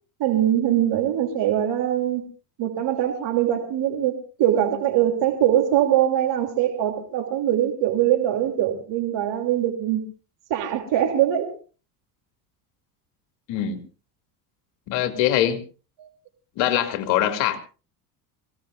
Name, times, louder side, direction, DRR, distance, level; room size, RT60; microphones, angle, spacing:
voice 1, 0.2-2.2 2.6-10.1 10.5-11.5 16.0-16.1, right 11 dB, 60° right, 4 dB, 3.1 m, -22 dB
voice 2, 13.5-13.8 14.9-15.6 16.6-17.6, left 11 dB, 70° left, 7 dB, 2.6 m, -22 dB
26.0 x 17.0 x 2.6 m, 0.35 s
hypercardioid pair, 75°, 48 cm